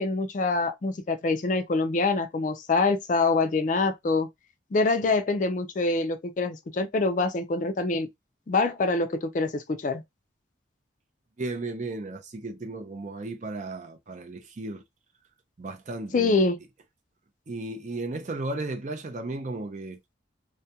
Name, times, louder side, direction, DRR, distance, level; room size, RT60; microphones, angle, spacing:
voice 1, 0.0-4.3 4.7-8.1 8.5-10.0 16.1-16.6, left 3 dB, 40° left, 0.4 m, -25 dB
voice 2, 11.4-14.8 15.6-16.4 17.5-20.0, right 2 dB, 40° right, 0.4 m, -35 dB
2.3 x 2.1 x 2.7 m
head